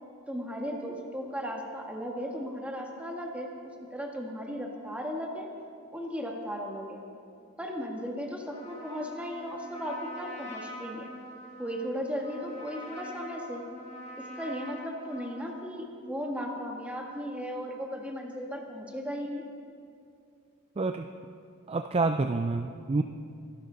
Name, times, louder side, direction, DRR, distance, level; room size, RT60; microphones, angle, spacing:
voice 1, 0.3-3.5 3.9-5.5 5.9-7.0 7.6-11.1 11.6-13.6 14.2-19.4, equal, 5° right, 0 dB, 1.6 m, -36 dB
Trumpet, 8.4-15.6, equal, 30° left, 3.1 m, -44 dB
voice 2, 20.8-21.1 21.7-23.0, right 3 dB, 25° right, 7 dB, 0.4 m, -28 dB
24.5 x 12.0 x 3.9 m, 2.4 s
head